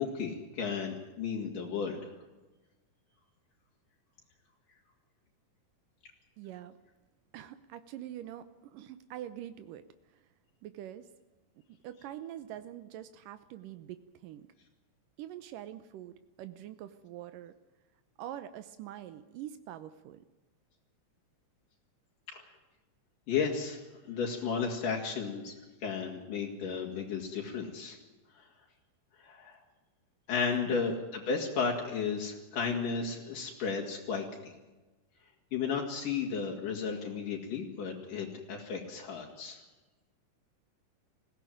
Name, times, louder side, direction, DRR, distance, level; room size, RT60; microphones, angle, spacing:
voice 1, 0.0-2.1 22.3-22.5 23.3-25.5 25.8-28.0 28.3-28.5 29.2-29.6 30.3-34.5 35.5-39.6, left 5 dB, 75° left, -1 dB, 3.9 m, -34 dB
voice 2, 6.4-6.7 7.3-9.8 10.6-11.1 11.8-14.5 15.2-17.5 18.2-20.2 30.6-30.8, right 12 dB, 80° right, 11 dB, 2.5 m, -44 dB
20.5 x 16.5 x 9.2 m, 1.2 s
omnidirectional pair, 3.8 m